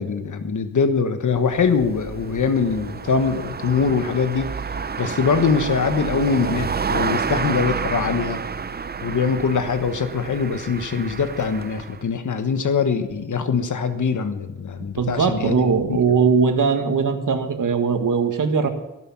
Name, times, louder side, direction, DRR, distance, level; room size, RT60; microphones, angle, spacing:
voice 1, 0.0-4.5 5.0-8.4 9.0-16.0, left 5 dB, 75° left, 9 dB, 1.3 m, -23 dB
sound 1, 1.4-12.0, right 5 dB, 30° right, 0.5 m, -29 dB
voice 2, 15.0-18.7, right 5 dB, 90° right, 6 dB, 1.8 m, -20 dB
15.5 x 12.0 x 5.9 m, 1.0 s
wide cardioid pair, 90°, 31 cm